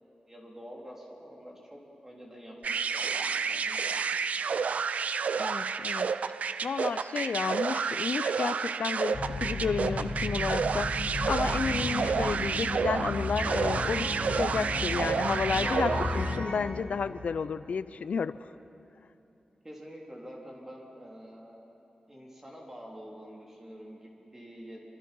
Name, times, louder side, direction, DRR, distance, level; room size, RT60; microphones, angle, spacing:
voice 1, 0.0-4.0 19.6-21.6 22.1-25.0, equal, 15° right, -2 dB, 3.8 m, -47 dB
sound 1, 2.6-16.5, right 5 dB, 80° right, 0.5 m, -30 dB
voice 2, 5.4-6.3 6.6-18.5, left 6 dB, 80° left, 14 dB, 0.5 m, -32 dB
sound 2, 9.1-16.5, left 2 dB, 60° left, 7.5 m, -33 dB
26.5 x 24.5 x 5.4 m, 2.8 s
wide cardioid pair, 140°, 2 cm